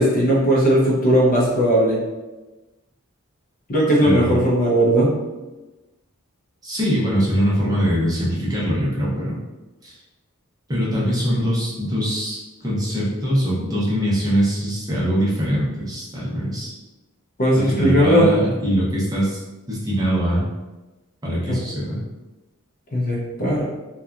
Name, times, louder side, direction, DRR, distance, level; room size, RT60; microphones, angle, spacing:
voice 1, 0.0-2.0 3.7-5.1 17.4-18.3 21.5-21.6 22.9-23.6, right 1 dB, 40° left, -4 dB, 0.6 m, -17 dB
voice 2, 4.0-4.5 6.6-9.4 9.8-10.0 10.7-16.7 17.5-19.4 19.7-20.4 21.2-22.0, equal, 20° right, -7 dB, 0.6 m, -22 dB
2.8 x 2.2 x 2.3 m, 1.1 s
head